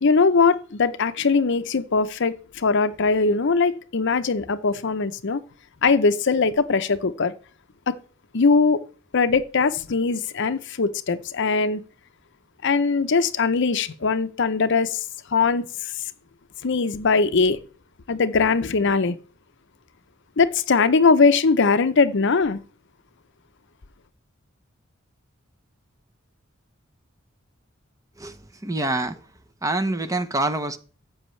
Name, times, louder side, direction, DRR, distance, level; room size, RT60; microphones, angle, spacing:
voice 1, 0.0-5.4 5.8-7.3 7.9-8.0 8.3-8.8 9.1-11.8 12.6-15.0 15.3-15.7 16.6-17.6 18.1-19.2 20.4-22.6, left 4 dB, 60° left, 0.7 m, -20 dB
voice 2, 28.2-29.3 29.6-30.8, right 2 dB, 15° right, 0.9 m, -26 dB
12.5 x 7.9 x 3.2 m
head